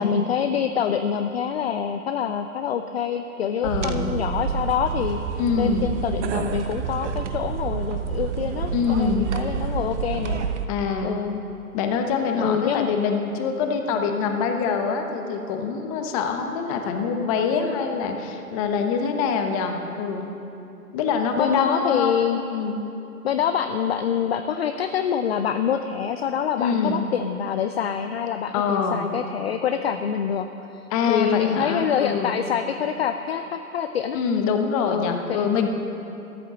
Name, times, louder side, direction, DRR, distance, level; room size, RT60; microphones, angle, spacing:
voice 1, 0.0-10.5 11.0-11.4 12.4-12.9 21.4-22.4 23.2-34.2 34.9-35.5, left 8 dB, 45° left, 8 dB, 0.6 m, -26 dB
voice 2, 3.6-4.2 5.4-5.9 8.7-9.3 10.7-11.2 11.7-20.3 20.9-22.2 22.5-22.8 26.6-27.1 28.5-29.0 30.9-32.4 34.1-35.7, left 5 dB, 25° left, 5 dB, 1.0 m, -24 dB
sound 1, 3.6-10.7, right 6 dB, 50° right, 1.0 m, -28 dB
13.0 x 12.5 x 7.0 m, 2.9 s
hypercardioid pair, 145°, 45 cm